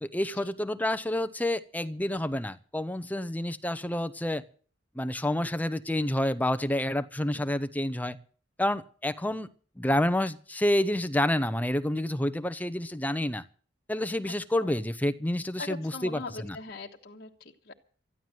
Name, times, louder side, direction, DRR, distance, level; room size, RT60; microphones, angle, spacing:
voice 1, 0.0-4.4 4.9-8.2 8.6-9.5 9.8-13.4 13.9-16.6, left 1 dB, 10° left, 12 dB, 0.8 m, -29 dB
voice 2, 14.2-14.8 15.6-17.7, left 3 dB, 55° left, -1 dB, 1.5 m, -42 dB
13.5 x 11.5 x 7.6 m, 0.42 s
head